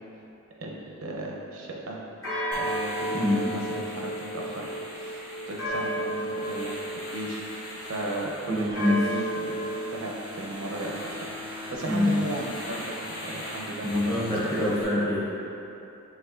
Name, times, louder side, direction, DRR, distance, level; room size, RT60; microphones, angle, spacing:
voice 1, 0.6-2.0 2.5-5.2 5.5-9.6 9.9-14.3, right 2 dB, 75° right, -2 dB, 0.6 m, -35 dB
sound 1, 2.2-7.9 8.7-10.0, right 1 dB, 60° left, 1.3 m, -33 dB
sound 2, 2.5-14.8, left 1 dB, 80° left, 1.0 m, -40 dB
voice 2, 3.1-3.5 8.5-9.0 11.9-12.2 13.8-15.3, left 1 dB, 15° left, -7 dB, 0.6 m, -25 dB
5.4 x 3.3 x 2.4 m, 2.9 s
head